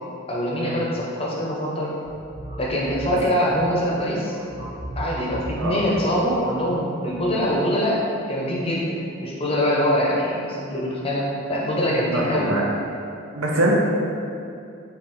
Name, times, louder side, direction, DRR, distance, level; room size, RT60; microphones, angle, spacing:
voice 1, 0.3-2.0 2.6-4.3 5.0-12.5, equal, 25° left, -4 dB, 0.6 m, -24 dB
sound 1, 2.0-7.4, right 1 dB, 20° right, 0.6 m, -38 dB
voice 2, 12.1-12.7 13.4-13.7, right 1 dB, 80° right, -2 dB, 0.7 m, -24 dB
5.3 x 2.4 x 3.0 m, 2.6 s
head